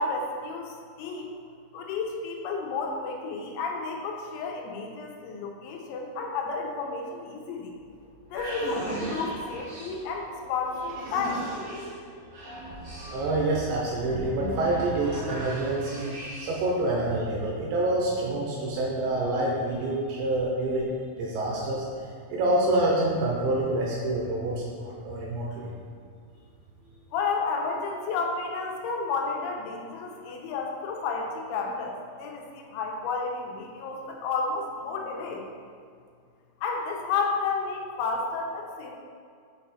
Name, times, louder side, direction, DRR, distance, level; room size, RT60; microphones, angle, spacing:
voice 1, 0.0-1.4 1.7-7.8 8.3-11.5 27.1-35.5 36.6-39.0, left 4 dB, 80° left, 1 dB, 3.2 m, -31 dB
sound 1, 7.7-16.8, equal, 50° right, 2.1 m, -37 dB
voice 2, 13.1-16.1 16.4-20.9 21.2-21.9 22.3-25.7, right 2 dB, 75° right, -3 dB, 2.9 m, -27 dB
6.7 x 5.9 x 4.2 m, 2.2 s
omnidirectional pair, 5.5 m